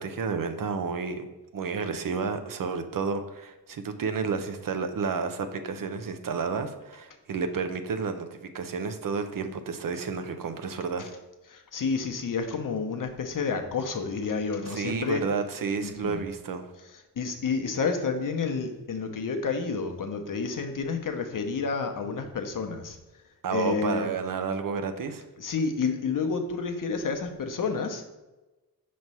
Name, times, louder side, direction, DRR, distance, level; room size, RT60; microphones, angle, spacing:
voice 1, 0.0-11.1 14.7-16.7 23.4-25.3, right 5 dB, 60° right, 8 dB, 0.6 m, -31 dB
voice 2, 11.5-15.2 15.8-16.2 17.2-23.0 23.5-24.1 25.4-28.1, left 5 dB, 55° left, 6 dB, 0.8 m, -30 dB
5.9 x 3.1 x 5.4 m, 1.1 s
wide cardioid pair, 115°, 38 cm